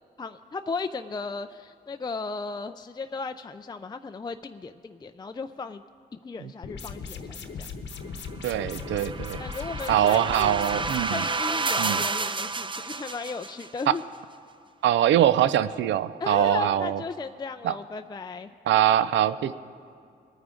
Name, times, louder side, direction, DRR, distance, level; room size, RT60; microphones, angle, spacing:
voice 1, 0.2-5.8 6.2-7.7 8.0-8.2 9.4-10.7 11.1-14.0 16.2-18.5, left 4 dB, 20° left, 8 dB, 0.4 m, -35 dB
sound 1, 6.6-11.0, left 5 dB, 75° left, 1.0 m, -38 dB
voice 2, 8.4-9.4 9.9-11.2 11.8-12.0 13.9-14.0 14.8-17.0 17.6-17.7 18.7-19.5, right 11 dB, 80° right, 15 dB, 0.4 m, -23 dB
sound 2, 8.5-13.8, right 3 dB, 25° right, 0.6 m, -31 dB
21.0 x 9.3 x 3.8 m, 2.4 s
cardioid pair, 70°, 19 cm